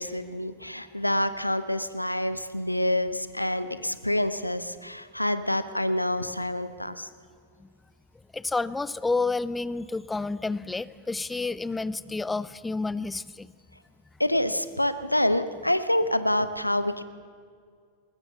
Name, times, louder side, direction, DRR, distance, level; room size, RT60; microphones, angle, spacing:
voice 1, 0.0-7.1 14.2-17.0, left 1 dB, 85° left, 12 dB, 1.0 m, -27 dB
voice 2, 8.3-13.5, left 3 dB, 10° left, 19 dB, 0.5 m, -30 dB
20.5 x 20.0 x 7.1 m, 2.1 s
figure-of-eight pair, 90°, 0 cm